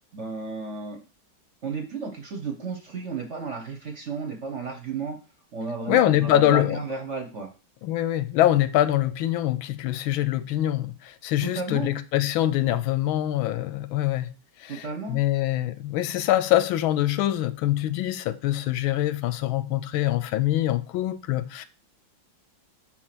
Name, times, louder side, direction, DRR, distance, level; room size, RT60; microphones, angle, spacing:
voice 1, 0.1-1.0 1.6-5.2 5.5-7.5 11.4-11.9 14.7-15.2, right 4 dB, 45° right, 1.0 m, -33 dB
voice 2, 5.9-6.8 7.8-14.3 14.6-21.6, left 13 dB, 90° left, 1.4 m, -24 dB
4.6 x 4.4 x 5.9 m
omnidirectional pair, 2.2 m